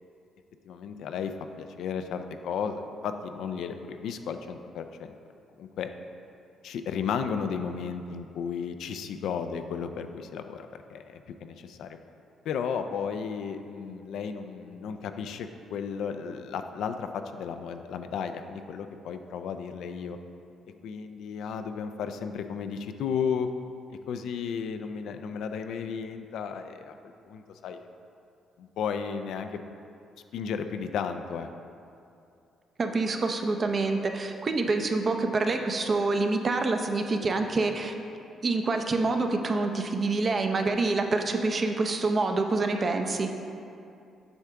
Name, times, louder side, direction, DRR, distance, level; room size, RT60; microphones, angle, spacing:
voice 1, 0.6-1.3 1.6-5.1 5.6-5.9 6.6-12.0 12.5-20.2 20.8-23.5 24.1-27.0 27.3-27.8 28.6-29.6 30.3-31.5, left 6 dB, 80° left, 7 dB, 0.4 m, -34 dB
voice 2, 32.8-37.9 38.4-43.3, right 3 dB, 40° right, 5 dB, 0.6 m, -26 dB
7.9 x 5.6 x 3.6 m, 2.6 s
cardioid pair, 90°, 0 cm